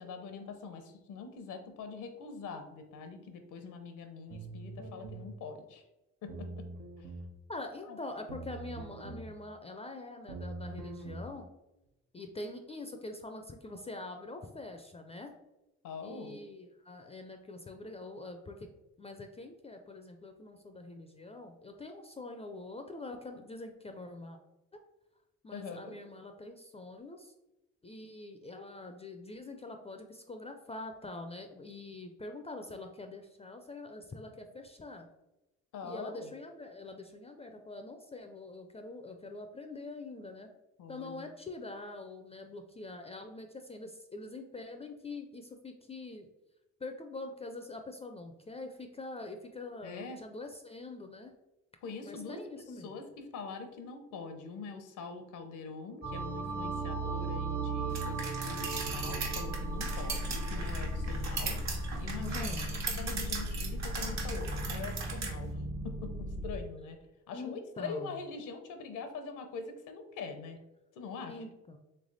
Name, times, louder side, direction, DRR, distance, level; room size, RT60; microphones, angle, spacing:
voice 1, 0.0-5.8 6.2-6.7 7.0-7.1 7.9-8.0 15.8-16.4 25.5-25.9 35.7-36.3 40.8-41.3 49.8-50.2 51.8-61.6 62.0-67.0 67.3-70.6 70.9-71.4, left 4 dB, 85° left, 7 dB, 0.7 m, -43 dB
sound 1, 4.3-5.3 6.3-7.3 8.3-9.3 10.3-11.3, right 3 dB, 85° right, 0.8 m, -43 dB
voice 2, 7.5-11.5 12.1-15.3 16.0-18.6 19.0-24.4 25.4-27.3 27.8-35.1 35.8-40.5 40.9-46.3 46.8-51.3 52.0-52.9 62.2-62.7 67.3-68.1 71.3-71.8, left 2 dB, 20° left, 5 dB, 0.4 m, -44 dB
sound 2, 56.0-66.5, right 2 dB, 35° right, 0.8 m, -36 dB
sound 3, 57.9-65.3, right 5 dB, 65° right, 1.0 m, -39 dB
3.3 x 3.3 x 3.9 m, 0.95 s
cardioid pair, 90°, 30 cm